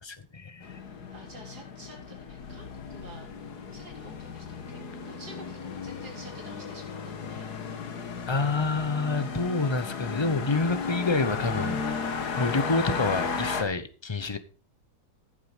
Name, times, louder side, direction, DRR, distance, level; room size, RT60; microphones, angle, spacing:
voice 1, 0.0-0.8 8.3-11.8 12.4-14.4, left 3 dB, 25° left, 12 dB, 0.7 m, -28 dB
sound 1, 0.6-13.6, left 5 dB, 80° left, 2.0 m, -35 dB
voice 2, 0.7-3.3 3.7-8.1 9.1-9.5 12.6-12.7, right 1 dB, 85° right, 0 dB, 4.3 m, -50 dB
14.0 x 7.7 x 5.2 m, 0.37 s
omnidirectional pair, 1.7 m